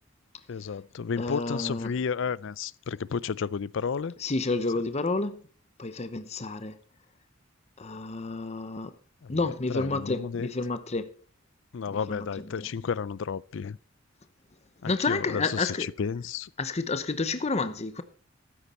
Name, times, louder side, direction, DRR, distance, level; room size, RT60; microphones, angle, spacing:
voice 1, 0.5-4.2 9.2-10.5 11.7-13.8 14.8-16.5, left 6 dB, 65° left, 0.4 m, -32 dB
voice 2, 1.2-1.9 4.2-5.4 5.8-6.8 7.8-8.9 9.3-11.1 12.1-12.5 14.8-15.9 16.6-18.0, left 3 dB, 35° left, 0.8 m, -30 dB
13.5 x 9.8 x 4.3 m
head